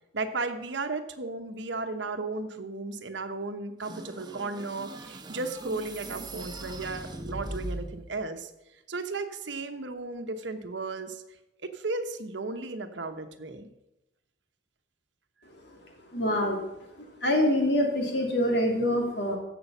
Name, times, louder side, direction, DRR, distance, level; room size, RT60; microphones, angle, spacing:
voice 1, 0.1-8.5 8.9-11.2 11.6-13.7, right 3 dB, 70° right, 7 dB, 1.1 m, -35 dB
sound 1, 3.8-8.2, right 1 dB, 25° right, 1.0 m, -40 dB
voice 2, 16.1-16.6 17.2-19.4, left 1 dB, 65° left, 1 dB, 2.7 m, -25 dB
15.5 x 6.3 x 5.6 m, 0.92 s
head